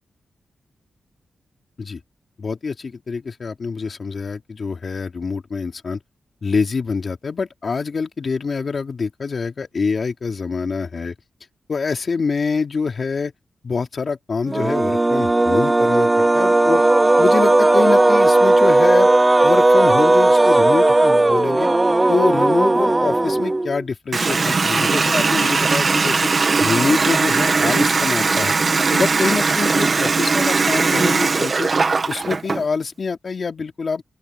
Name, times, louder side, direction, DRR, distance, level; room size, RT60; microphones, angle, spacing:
voice 1, 2.4-6.0 6.4-11.1 11.7-13.3 13.6-16.8 17.2-19.1 19.4-21.7 22.1-26.3 26.6-28.5 28.9-31.7 32.1-34.0, left 5 dB, 45° left, 3.0 m, -25 dB
sound 1, 14.5-23.8, right 2 dB, 15° right, 0.8 m, -15 dB
Water tap faucet, 24.1-32.6, right 4 dB, 40° right, 2.0 m, -19 dB
open air
wide cardioid pair, 110°, 0 cm